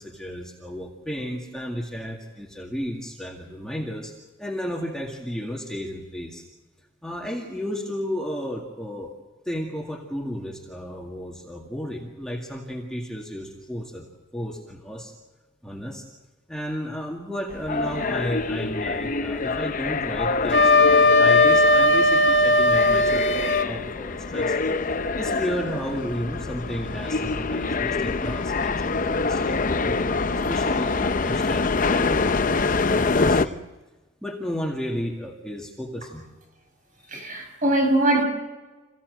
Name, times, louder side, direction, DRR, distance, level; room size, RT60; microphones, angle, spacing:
voice 1, 0.0-6.4 7.0-9.1 9.5-15.1 15.6-16.1 16.5-24.6 25.2-33.6 34.2-36.3, equal, 5° left, 2.1 m, -33 dB
sound 1, 17.5-33.4, left 3 dB, 40° left, 0.7 m, -25 dB
Wind instrument woodwind instrument, 20.5-23.7, left 2 dB, 75° left, 1.7 m, -17 dB
voice 2, 37.1-38.2, right 1 dB, 40° right, 5.6 m, -21 dB
28.0 x 16.0 x 7.8 m
head